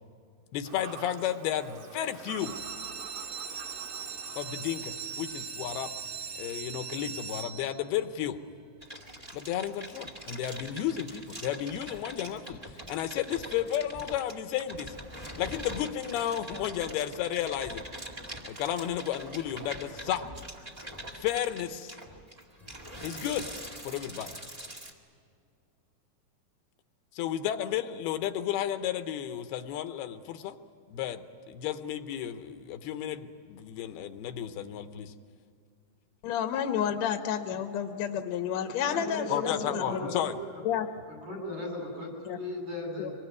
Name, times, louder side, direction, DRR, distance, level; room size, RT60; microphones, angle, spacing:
voice 1, 0.5-2.5 4.4-5.9 6.4-8.4 9.3-12.6 12.9-15.0 15.4-17.9 18.5-20.3 21.2-22.0 23.0-23.5 23.8-24.4 27.1-30.6 30.9-35.1 39.3-40.3, left 11 dB, 80° left, 9 dB, 2.8 m, -33 dB
Fowl / Bird vocalization bird call bird song, 0.6-5.6, right 7 dB, 90° right, 3.5 m, -48 dB
sound 1, 2.3-8.0 8.6-9.1 9.5-9.6 9.9-10.0 10.4-10.5, right 6 dB, 40° right, 2.1 m, -40 dB
sound 2, 8.8-24.9, equal, 20° right, 1.0 m, -43 dB
voice 2, 36.2-40.0 40.6-40.9 42.3-42.4 43.0-43.1, left 9 dB, 60° left, 6 dB, 1.9 m, -30 dB
voice 3, 38.8-40.6 41.1-43.2, left 1 dB, 75° right, 0 dB, 9.4 m, -37 dB
25.0 x 21.5 x 9.5 m, 2.2 s
omnidirectional pair, 4.6 m